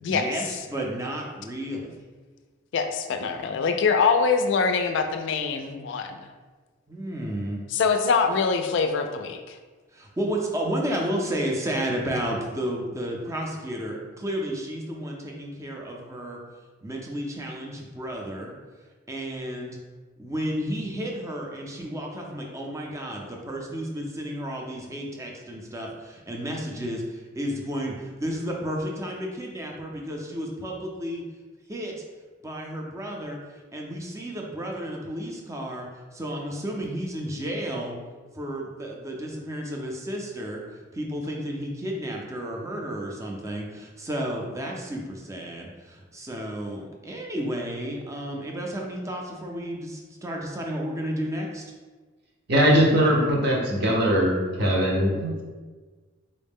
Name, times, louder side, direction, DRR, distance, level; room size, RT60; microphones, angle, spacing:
voice 1, 0.1-1.9 6.9-7.6 9.9-16.4 16.8-18.5 19.1-19.8 20.2-31.2 31.7-31.9 32.4-33.4 33.7-38.0 38.3-40.6 40.9-51.6, equal, 15° right, -1 dB, 0.4 m, -32 dB
voice 2, 2.7-6.1 7.7-9.6, left 5 dB, 65° left, 6 dB, 0.3 m, -24 dB
voice 3, 52.5-55.4, equal, 55° right, -3 dB, 0.8 m, -21 dB
3.9 x 2.1 x 3.5 m, 1.3 s
head